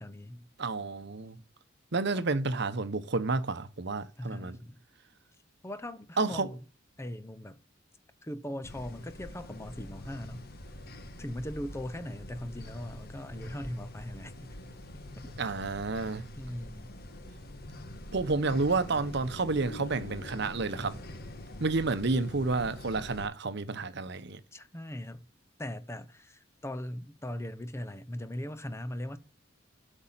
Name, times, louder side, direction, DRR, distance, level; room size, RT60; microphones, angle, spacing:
voice 1, 0.0-0.5 2.1-2.2 4.2-4.8 5.6-6.6 7.0-7.6 8.2-10.5 11.2-14.4 15.2-15.3 16.4-17.0 24.5-25.3 25.6-29.2, left 1 dB, 15° left, 0.7 m, -39 dB
voice 2, 0.6-1.4 1.9-4.6 6.2-6.5 15.4-16.2 18.1-21.0 21.6-24.4, right 3 dB, 60° right, 0.9 m, -30 dB
sound 1, 8.6-23.3, left 1 dB, 50° left, 1.3 m, -45 dB
8.3 x 5.4 x 7.4 m
head